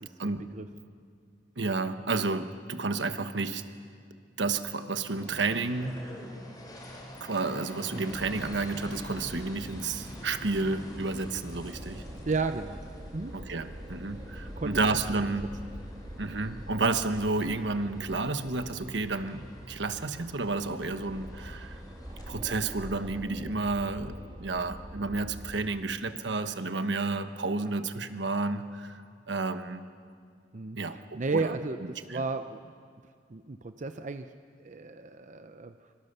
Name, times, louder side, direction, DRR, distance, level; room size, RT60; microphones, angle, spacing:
voice 1, 0.0-0.7 7.9-8.1 12.3-12.8 13.1-13.3 14.5-14.9 15.1-15.3 30.5-32.7 33.3-34.3 34.6-35.7, right 3 dB, 45° right, 8 dB, 0.7 m, -34 dB
voice 2, 1.6-3.6 4.4-6.0 7.2-12.0 13.3-15.5 16.2-21.8 22.3-29.0 29.3-29.8 30.8-31.6 32.1-32.2, right 3 dB, 75° right, 9 dB, 1.2 m, -31 dB
sound 1, 5.1-22.3, left 1 dB, 20° left, 4.2 m, -48 dB
sound 2, 8.1-25.6, equal, 25° right, 1.7 m, -44 dB
25.0 x 23.0 x 6.8 m, 2.2 s
head